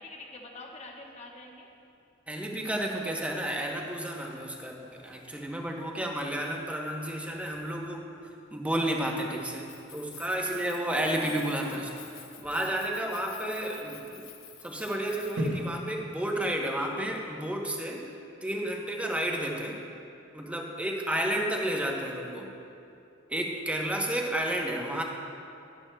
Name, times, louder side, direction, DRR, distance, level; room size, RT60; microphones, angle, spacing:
voice 1, 0.0-1.7 11.2-11.5 13.7-13.8 19.8-19.9 24.1-24.2, left 2 dB, 35° left, 0 dB, 1.0 m, -46 dB
voice 2, 2.3-12.0 12.4-14.3 14.6-18.1 18.4-19.8 20.3-22.5 23.3-25.0, right 1 dB, 5° right, 0 dB, 0.8 m, -31 dB
sound 1, 2.9-17.2, equal, 65° right, 1.3 m, -45 dB
Keys jangling, 9.6-15.7, left 9 dB, 85° left, 0.8 m, -50 dB
12.5 x 10.5 x 2.3 m, 2.6 s
head